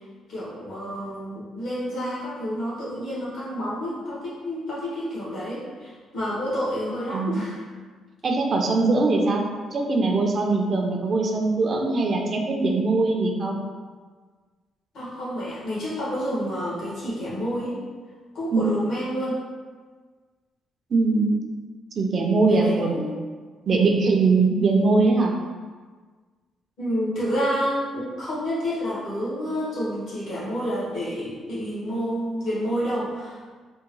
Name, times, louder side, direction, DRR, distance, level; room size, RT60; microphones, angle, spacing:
voice 1, 0.3-7.6 14.9-17.8 18.3-19.4 22.5-23.2 23.7-23.9 26.8-33.5, equal, 75° left, -7 dB, 1.4 m, -29 dB
voice 2, 8.2-9.4 9.7-13.6 18.5-18.7 20.9-21.3 22.0-22.9 23.7-25.3, right 3 dB, 50° right, 1 dB, 0.4 m, -21 dB
3.5 x 2.2 x 3.1 m, 1.5 s
cardioid pair, 90°, 0 cm